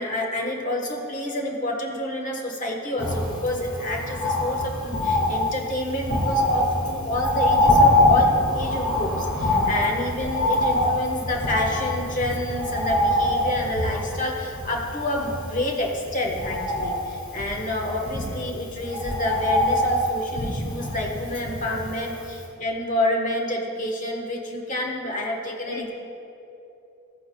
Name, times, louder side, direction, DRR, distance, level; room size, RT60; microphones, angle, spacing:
voice 1, 0.0-25.9, left 1 dB, 35° left, 0 dB, 1.3 m, -28 dB
Bird, 3.0-22.1 22.4-22.5, left 1 dB, 85° left, 2.2 m, -24 dB
voice 2, 21.8-22.2 25.7-25.9, left 4 dB, 55° left, -1 dB, 0.7 m, -39 dB
15.0 x 8.9 x 2.3 m, 2.8 s
head